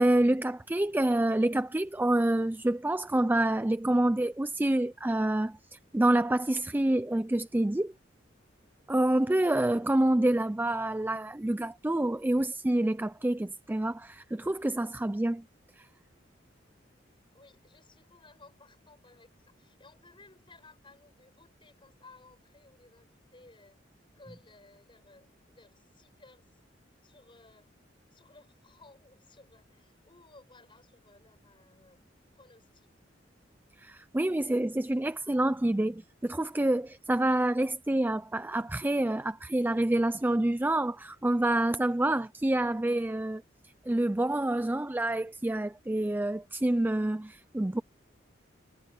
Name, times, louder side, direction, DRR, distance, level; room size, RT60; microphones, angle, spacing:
voice 1, 0.0-7.9 8.9-15.4 15.8-15.9 33.8-43.4 43.9-47.8, right 1 dB, 10° right, 0.4 m, -27 dB
voice 2, 17.3-23.8 24.2-26.6 27.0-27.7 28.1-32.0 32.3-32.9, left 3 dB, 30° left, 6.9 m, -58 dB
head